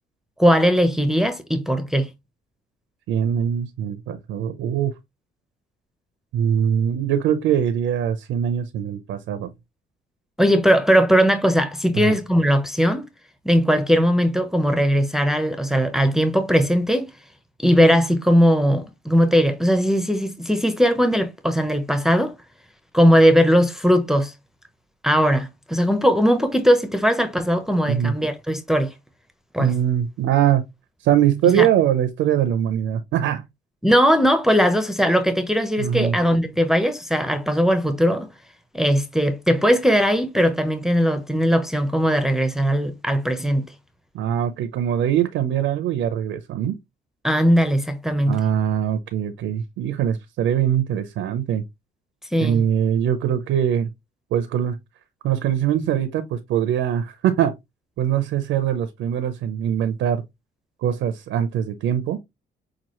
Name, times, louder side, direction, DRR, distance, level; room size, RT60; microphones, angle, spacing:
voice 1, 0.4-2.1 10.4-13.0 13.4-17.1 17.6-22.3 22.9-24.3 25.0-28.9 29.5-29.7 31.5-31.7 33.8-38.3 38.7-43.7 47.2-48.4 52.3-52.6, equal, ahead, 0.7 m, -19 dB
voice 2, 3.1-4.9 6.3-9.5 12.0-12.2 27.9-28.1 29.6-30.7 31.0-33.5 35.8-36.2 44.1-46.8 48.3-51.6 52.4-53.9 54.3-54.8 55.2-57.5 58.0-60.2 60.8-62.2, right 9 dB, 85° right, 0.7 m, -22 dB
6.0 x 2.4 x 3.0 m
cardioid pair, 90°, 20 cm